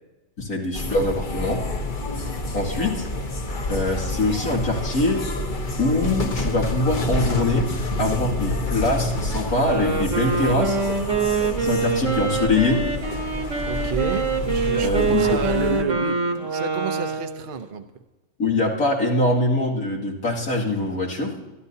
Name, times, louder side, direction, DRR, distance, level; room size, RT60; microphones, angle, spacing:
voice 1, 0.4-1.6 2.5-3.1 3.7-5.2 5.8-7.7 8.0-10.8 11.6-12.8 14.7-15.4 18.4-21.4, left 2 dB, 90° left, -3 dB, 2.9 m, -23 dB
sound 1, 0.7-15.8, left 2 dB, 35° left, 1.1 m, -28 dB
Wind instrument woodwind instrument, 9.5-17.5, right 5 dB, 60° right, 1.8 m, -25 dB
voice 2, 13.6-17.8, right 5 dB, 45° right, 6 dB, 0.8 m, -30 dB
24.5 x 12.0 x 2.8 m, 1.2 s
omnidirectional pair, 1.5 m